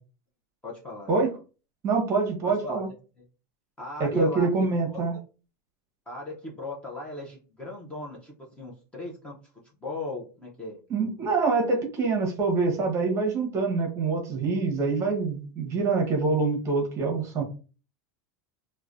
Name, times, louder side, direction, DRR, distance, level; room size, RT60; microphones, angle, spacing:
voice 1, 0.6-1.3 2.4-2.8 3.2-3.3 3.8-4.5 4.9-5.0 6.1-9.4 9.8-10.8, left 2 dB, 10° left, -3 dB, 0.6 m, -38 dB
voice 2, 1.8-2.9 4.0-5.1 10.9-17.4, right 4 dB, 30° right, 2 dB, 0.8 m, -25 dB
3.1 x 2.1 x 2.4 m, 0.35 s
supercardioid pair, 150°, 10 cm